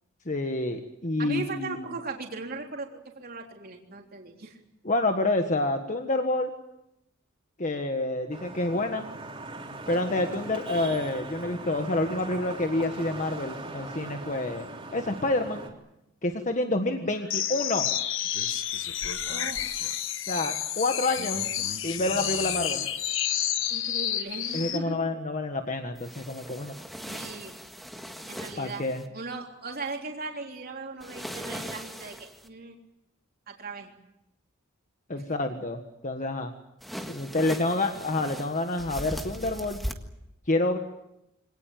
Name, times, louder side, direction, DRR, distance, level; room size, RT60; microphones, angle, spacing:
voice 1, 0.2-1.9 4.8-6.5 7.6-9.1 9.9-14.7 14.9-15.7 16.2-17.9 20.3-22.9 24.5-26.7 28.6-29.0 35.1-36.5 37.1-39.8 40.5-40.8, left 2 dB, 40° left, 5 dB, 1.5 m, -28 dB
voice 2, 1.2-4.6 17.0-17.2 19.3-19.6 23.7-25.0 27.1-27.6 28.2-28.9 29.1-32.7 33.5-33.9 37.7-38.0, right 3 dB, 50° right, 1 dB, 3.6 m, -38 dB
Vehicle horn car horn honking / Traffic noise roadway noise, 8.3-15.7, right 2 dB, 25° right, 3.8 m, -40 dB
sound 1, 17.3-24.9, left 10 dB, 70° left, 1.3 m, -30 dB
sound 2, 25.9-29.1 31.0-32.5 36.8-39.9, equal, ahead, 1.7 m, -39 dB
25.0 x 18.5 x 9.2 m, 0.87 s
head